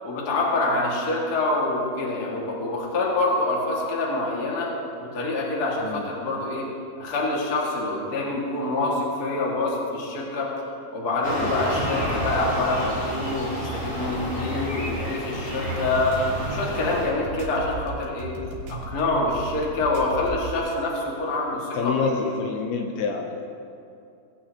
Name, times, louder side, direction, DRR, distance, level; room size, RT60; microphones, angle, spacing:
voice 1, 0.0-4.7 5.0-6.6 7.0-10.5 10.9-16.2 16.5-18.3 18.7-22.2, left 2 dB, 50° left, -4 dB, 1.2 m, -26 dB
voice 2, 5.8-6.1 11.4-11.7 21.5-23.8, left 5 dB, 80° left, 2 dB, 2.4 m, -29 dB
sound 1, 11.2-17.1, equal, 20° left, 2.2 m, -30 dB
sound 2, 15.5-20.6, right 2 dB, 90° right, 3.7 m, -35 dB
19.5 x 8.7 x 2.9 m, 2.5 s
omnidirectional pair, 4.9 m